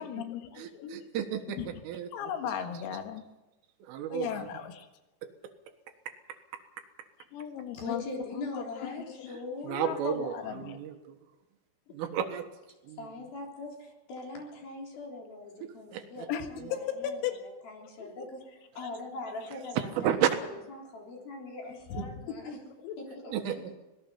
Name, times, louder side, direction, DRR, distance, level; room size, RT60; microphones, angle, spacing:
voice 1, 0.0-1.1 1.6-1.7 2.1-3.2 4.1-4.9 7.3-8.0 8.3-9.3 9.8-10.8 16.3-17.4 18.0-18.3 18.8-18.9 21.9-22.4 22.8-23.0, left 9 dB, 90° left, 6 dB, 4.4 m, -37 dB
voice 2, 0.6-2.5 3.8-4.5 5.2-5.3 6.1-6.2 6.5-6.8 9.6-11.2 11.9-12.5 12.8-13.1 15.6-16.3 16.6-16.7 18.8-18.9 19.5-20.3 23.3-23.6, right 10 dB, 75° right, 6 dB, 3.9 m, -33 dB
voice 3, 7.7-10.0 13.0-20.2 20.7-22.6 23.0-23.3, left 3 dB, 50° left, 0 dB, 5.2 m, -41 dB
25.0 x 18.5 x 5.7 m, 1.0 s
omnidirectional pair, 6.0 m